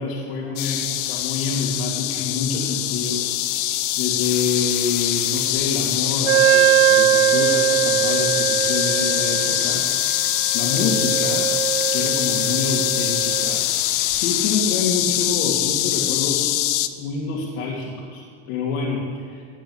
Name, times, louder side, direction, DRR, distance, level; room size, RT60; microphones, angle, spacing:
voice 1, 0.0-10.2 10.5-11.5 11.9-13.6 14.1-16.5 17.0-19.4, left 4 dB, 75° left, -5 dB, 3.1 m, -27 dB
sound 1, 0.6-16.9, left 14 dB, 50° left, 0.8 m, -23 dB
sound 2, 4.2-14.6, left 5 dB, 30° left, 1.4 m, -43 dB
Wind instrument woodwind instrument, 6.3-13.6, right 14 dB, 55° right, 0.6 m, -21 dB
19.5 x 6.8 x 8.3 m, 2.2 s
supercardioid pair, 155°, 30 cm